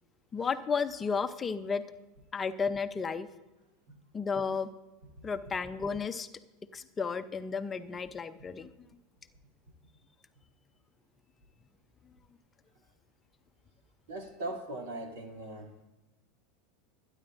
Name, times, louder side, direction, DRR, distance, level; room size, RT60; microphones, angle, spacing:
voice 1, 0.3-1.8 2.3-3.3 4.1-4.7 5.2-6.3 6.7-8.7, left 5 dB, 25° left, 9 dB, 0.7 m, -33 dB
voice 2, 14.1-15.7, right 2 dB, 80° right, 1 dB, 2.8 m, -39 dB
26.5 x 9.8 x 2.6 m, 1.1 s
hypercardioid pair, 105°, 0 cm